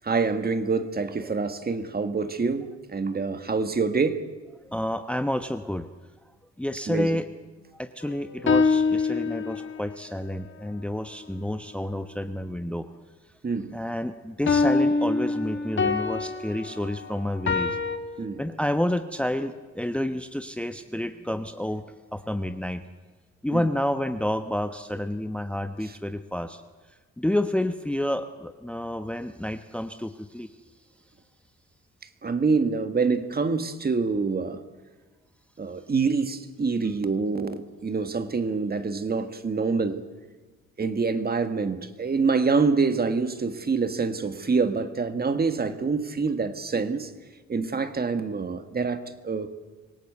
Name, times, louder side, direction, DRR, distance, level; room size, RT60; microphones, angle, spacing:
voice 1, 0.0-4.2 6.9-7.1 13.4-13.7 18.2-18.4 23.5-23.7 32.2-34.6 35.6-40.0 40.8-47.1 47.5-49.5, right 4 dB, 30° right, 9 dB, 1.7 m, -26 dB
voice 2, 4.6-5.9 6.6-7.3 7.8-12.9 13.7-17.8 18.4-21.8 22.1-22.8 23.4-26.6 27.2-30.5, left 1 dB, 5° left, 9 dB, 1.0 m, -29 dB
sound 1, 8.0-9.9 14.5-18.0, left 4 dB, 40° left, 2.1 m, -25 dB
25.5 x 17.5 x 8.3 m, 1.3 s
cardioid pair, 90°, 30 cm